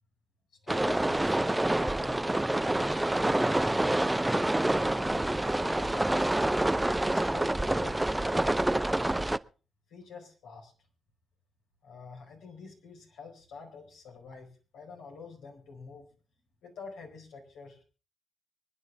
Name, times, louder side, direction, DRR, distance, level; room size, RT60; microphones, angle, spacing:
voice 1, 0.6-4.2 4.8-6.4 7.0-9.3 9.9-10.7 11.8-16.1 16.6-17.8, left 5 dB, 80° left, 0 dB, 4.8 m, -48 dB
sound 1, 0.7-9.4, right 1 dB, 15° right, 0.6 m, -27 dB
25.0 x 10.0 x 3.6 m, 0.36 s
hypercardioid pair, 45°, 0 cm